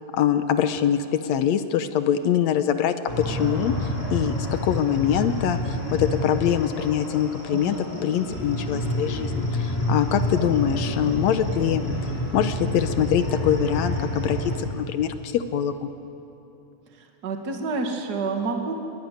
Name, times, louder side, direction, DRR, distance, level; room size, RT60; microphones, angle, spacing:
voice 1, 0.1-2.9 3.2-7.8 8.0-11.8 12.3-15.9, left 9 dB, 75° left, 10 dB, 1.7 m, -24 dB
sound 1, 3.1-14.6, left 1 dB, 15° left, 6.9 m, -28 dB
voice 2, 7.5-7.8 16.9-18.8, right 4 dB, 35° right, 3 dB, 2.2 m, -29 dB
23.5 x 21.0 x 9.5 m, 2.8 s
omnidirectional pair, 4.0 m